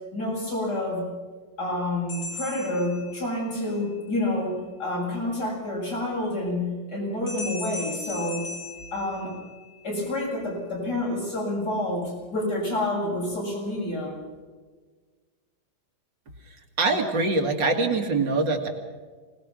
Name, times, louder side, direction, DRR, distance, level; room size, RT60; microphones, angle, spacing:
voice 1, 0.1-1.1 1.6-8.5 8.9-9.3 9.8-14.1, left 1 dB, 60° left, -4 dB, 8.8 m, -28 dB
sound 1, 2.1-3.6 7.3-9.8, left 2 dB, 45° left, 5.5 m, -38 dB
voice 2, 16.8-18.7, right 3 dB, 75° right, 2 dB, 3.0 m, -23 dB
25.0 x 19.5 x 6.3 m, 1.4 s
omnidirectional pair, 2.0 m